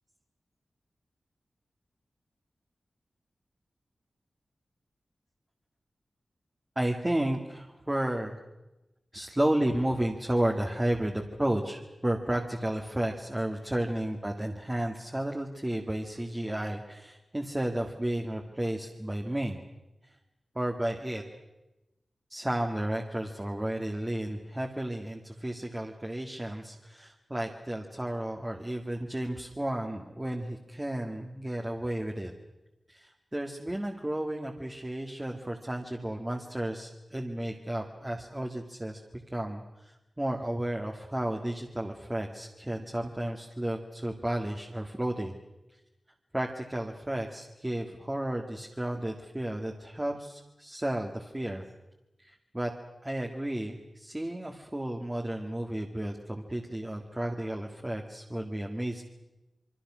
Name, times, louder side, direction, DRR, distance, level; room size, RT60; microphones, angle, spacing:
voice 1, 6.8-8.4 9.1-19.6 20.6-21.2 22.3-32.3 32.9-39.0 39.3-45.3 46.3-51.7 52.2-52.7 53.0-59.0, right 1 dB, 15° right, 1 dB, 2.0 m, -32 dB
26.5 x 23.5 x 6.3 m, 1.0 s
wide cardioid pair, 85°, 0 cm